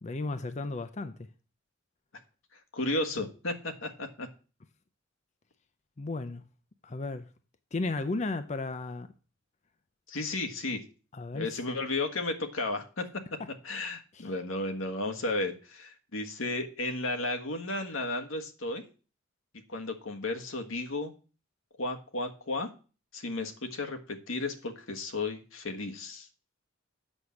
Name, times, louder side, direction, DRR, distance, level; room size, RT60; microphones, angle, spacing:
voice 1, 0.0-1.1 6.0-6.4 6.8-7.3 7.7-9.1 11.1-11.6 13.4-13.5 14.1-14.3, left 3 dB, 35° left, 0.6 m, -34 dB
voice 2, 2.7-4.3 10.1-10.8 11.3-13.1 13.6-18.8 19.7-21.1 21.8-22.7 23.1-26.3, left 2 dB, 80° left, 1.4 m, -33 dB
8.0 x 6.4 x 7.0 m
head